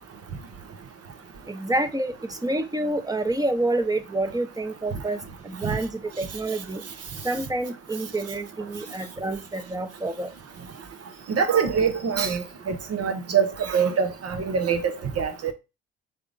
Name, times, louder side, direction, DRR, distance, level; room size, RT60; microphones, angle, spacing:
voice 1, 1.5-5.2 5.4-6.8 7.2-10.3, right 2 dB, 10° right, 0.9 m, -28 dB
voice 2, 11.3-15.5, right 6 dB, 55° right, 1.0 m, -24 dB
3.6 x 3.6 x 3.9 m
hypercardioid pair, 50°, 30 cm